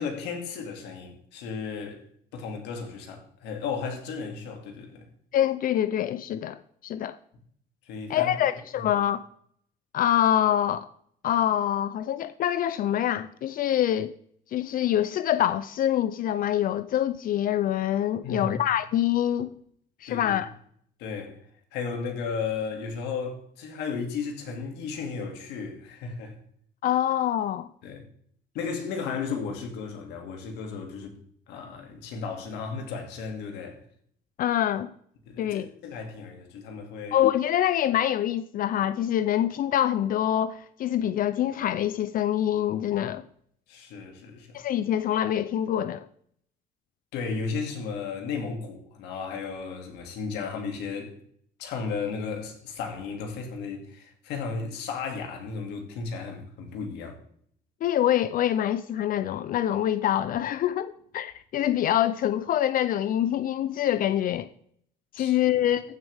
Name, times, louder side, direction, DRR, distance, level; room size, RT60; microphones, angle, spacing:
voice 1, 0.0-2.0 2.3-5.1 7.9-8.5 8.8-8.9 18.2-18.6 20.1-20.4 21.0-21.4 21.7-26.4 27.8-28.0 28.5-31.2 31.5-33.8 35.3-37.2 43.7-44.6 47.1-51.2 51.6-57.2 65.2-65.6, left 5 dB, 90° left, 2.5 m, -34 dB
voice 2, 5.3-7.2 8.1-9.2 9.9-10.9 11.2-14.1 14.5-19.5 20.0-20.5 26.8-27.7 34.4-34.9 35.4-35.7 37.1-43.2 44.5-46.1 57.8-64.5 65.1-65.8, left 11 dB, 55° left, 0.5 m, -25 dB
14.5 x 6.9 x 3.5 m
cardioid pair, 110°, 17 cm